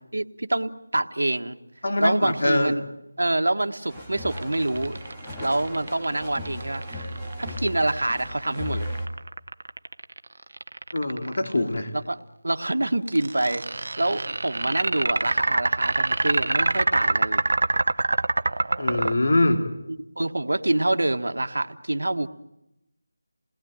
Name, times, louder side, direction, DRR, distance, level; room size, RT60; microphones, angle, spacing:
voice 1, 0.1-1.6 2.0-2.8 3.2-5.0 5.4-8.9 11.9-12.2 12.4-17.5 20.2-22.3, right 2 dB, 85° right, 7 dB, 1.5 m, -26 dB
voice 2, 1.8-2.7 10.9-11.9 18.8-19.6, left 2 dB, 60° left, 4 dB, 3.2 m, -23 dB
sound 1, 3.9-9.1, left 1 dB, 5° left, 2.2 m, -36 dB
sound 2, 4.3-11.6 13.1-19.1, right 2 dB, 60° right, 0.9 m, -25 dB
29.0 x 20.0 x 9.1 m, 0.92 s
figure-of-eight pair, 170°, 0 cm